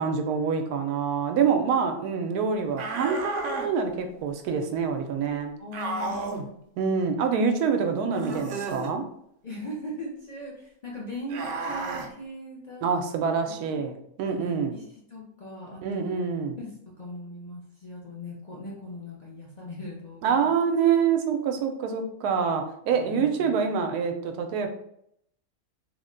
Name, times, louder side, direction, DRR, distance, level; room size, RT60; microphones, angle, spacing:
voice 1, 0.0-5.5 6.8-9.0 12.8-14.7 15.8-16.6 20.2-24.7, right 6 dB, 85° right, 5 dB, 1.1 m, -26 dB
sound 1, 2.8-3.7 5.7-6.5 8.1-8.9 11.3-12.1, right 3 dB, 65° right, 0.8 m, -32 dB
voice 2, 5.6-6.5 9.4-12.8 13.6-13.8 14.3-14.8 15.1-16.2 16.6-20.5 23.0-23.8, left 1 dB, 50° left, -5 dB, 0.4 m, -39 dB
3.3 x 2.1 x 3.7 m, 0.73 s
omnidirectional pair, 1.6 m